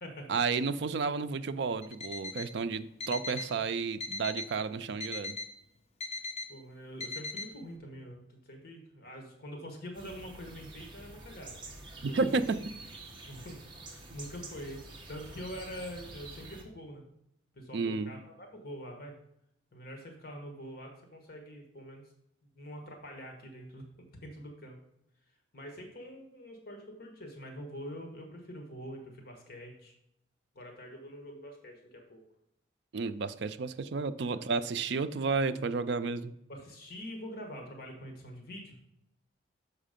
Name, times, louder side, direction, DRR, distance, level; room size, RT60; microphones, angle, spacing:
voice 1, 0.3-5.4 12.0-12.6 17.7-18.1 32.9-36.3, right 4 dB, 60° right, 12 dB, 0.4 m, -32 dB
Alarm, 1.8-2.5 3.0-3.5 4.0-4.5 5.0-5.5 6.0-6.5 7.0-7.5, left 3 dB, 30° left, 0.6 m, -39 dB
voice 2, 6.5-11.6 12.1-12.4 13.3-17.0 17.5-19.2 19.7-22.1 22.5-23.8 24.2-24.8 25.5-29.9 30.5-32.2 34.3-34.4 36.5-38.9, equal, 50° left, 3 dB, 1.2 m, -45 dB
sound 1, 9.9-16.6, right 2 dB, 25° right, 1.1 m, -48 dB
6.5 x 4.9 x 5.1 m, 0.79 s
head